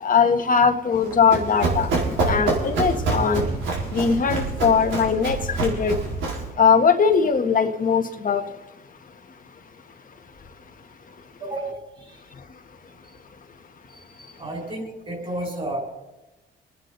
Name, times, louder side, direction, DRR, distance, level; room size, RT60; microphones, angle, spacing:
voice 1, 0.0-1.9 2.3-3.4 3.9-5.9 6.6-8.4, left 6 dB, 45° left, 1.5 m, -20 dB
Run, 0.9-6.5, right 3 dB, 80° right, 4.5 m, -26 dB
voice 2, 11.4-12.2 14.1-15.8, right 1 dB, 30° right, 5.6 m, -32 dB
27.0 x 9.7 x 4.0 m
cardioid pair, 90°, 20 cm